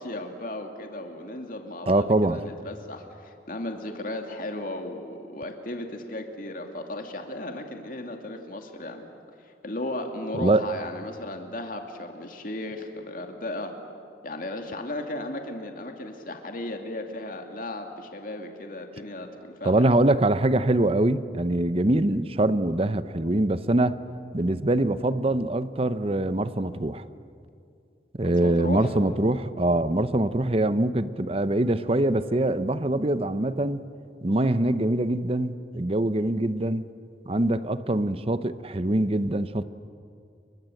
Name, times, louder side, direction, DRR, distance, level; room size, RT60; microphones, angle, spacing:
voice 1, 0.0-9.1 9.4-13.7 14.2-19.9 28.2-28.9, left 1 dB, 50° left, 2.5 m, -35 dB
voice 2, 1.9-2.4 10.3-10.7 19.6-24.0 24.3-27.0 28.1-33.8 34.2-36.8 37.3-39.6, right 1 dB, 35° right, 0.8 m, -23 dB
30.0 x 23.5 x 7.9 m
head